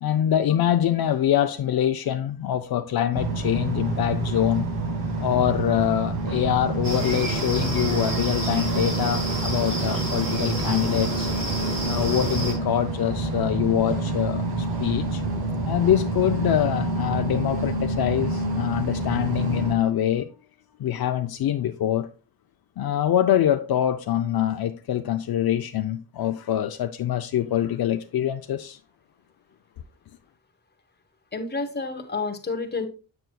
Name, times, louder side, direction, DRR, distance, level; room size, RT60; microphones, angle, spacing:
voice 1, 0.0-4.7 5.2-11.3 11.9-15.2 15.6-20.3 20.8-22.1 22.8-28.8, left 11 dB, 75° left, 0.6 m, -24 dB
sound 1, 3.1-19.7, right 2 dB, 90° right, 1.5 m, -28 dB
sound 2, 6.8-12.5, right 2 dB, 70° right, 4.1 m, -30 dB
voice 2, 31.3-32.9, left 3 dB, 25° left, 1.2 m, -29 dB
7.7 x 6.9 x 2.3 m
wide cardioid pair, 100°, 36 cm